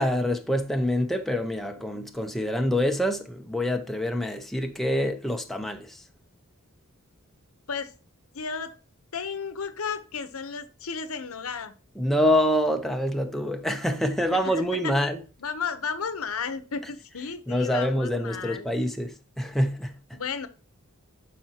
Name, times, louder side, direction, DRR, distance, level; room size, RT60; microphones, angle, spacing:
voice 1, 0.0-6.0 12.0-15.2 17.5-20.2, equal, ahead, 0.7 m, -26 dB
voice 2, 8.3-8.8 9.1-11.7 14.3-14.9 15.4-18.7 20.1-20.5, left 5 dB, 75° left, 0.9 m, -33 dB
11.5 x 5.0 x 2.9 m
head